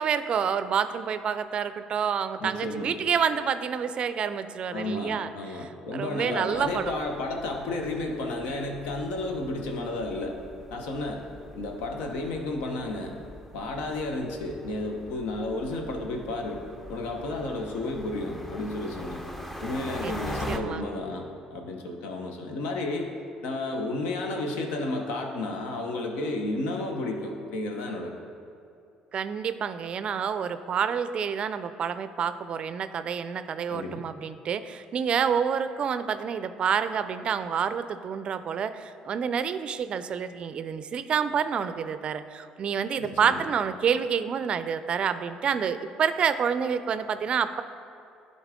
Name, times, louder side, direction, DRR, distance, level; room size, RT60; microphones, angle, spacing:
voice 1, 0.0-6.9 20.0-20.1 20.5-20.8 29.1-47.6, right 7 dB, 50° right, 12 dB, 0.4 m, -28 dB
voice 2, 2.4-2.9 4.7-10.4 10.7-11.2 11.5-13.2 13.5-19.2 19.6-23.1 23.4-28.1 33.7-34.1 43.0-43.4, left 2 dB, 80° left, 2 dB, 0.9 m, -32 dB
sound 1, 6.5-20.6, equal, 10° left, 0.6 m, -42 dB
11.0 x 3.9 x 3.7 m, 2.6 s
supercardioid pair, 75°, 2 cm